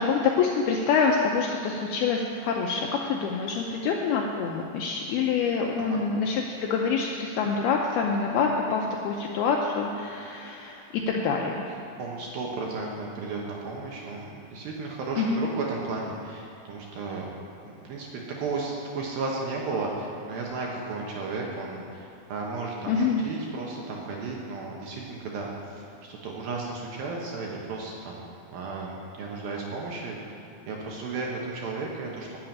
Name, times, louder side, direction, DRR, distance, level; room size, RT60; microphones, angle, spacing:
voice 1, 0.0-11.7 15.2-15.5 22.9-23.3, left 5 dB, 80° left, 0 dB, 2.3 m, -26 dB
voice 2, 12.0-17.3 17.7-28.2 28.5-32.4, right 3 dB, 70° right, -2 dB, 2.4 m, -34 dB
12.0 x 7.0 x 9.0 m, 2.7 s
omnidirectional pair, 5.3 m